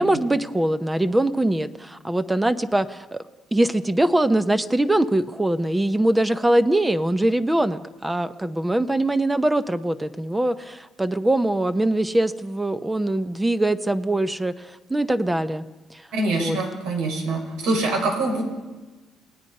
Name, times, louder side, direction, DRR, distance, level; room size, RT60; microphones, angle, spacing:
voice 1, 0.0-3.2 3.5-15.6 15.9-16.0 16.3-16.6, right 1 dB, 10° right, 12 dB, 0.8 m, -22 dB
voice 2, 16.1-18.4, right 2 dB, 85° right, 3 dB, 5.7 m, -24 dB
29.5 x 18.5 x 5.5 m, 1.2 s
cardioid pair, 145°, 0 cm